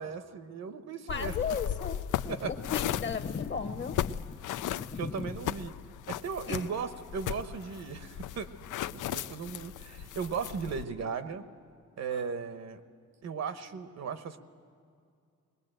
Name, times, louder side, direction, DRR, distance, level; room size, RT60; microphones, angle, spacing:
voice 1, 0.0-1.3 2.3-2.5 5.0-5.7 6.1-8.5 8.9-11.4 12.0-12.8 13.2-14.4, right 6 dB, 60° right, 10 dB, 1.0 m, -36 dB
sound 1, 1.1-10.8, left 11 dB, 85° left, 0.5 m, -37 dB
voice 2, 1.1-2.0 2.2-5.3 6.5-6.7 12.1-12.2, left 6 dB, 40° left, 10 dB, 1.1 m, -36 dB
22.0 x 20.0 x 9.0 m, 2.3 s
wide cardioid pair, 180°, 30 cm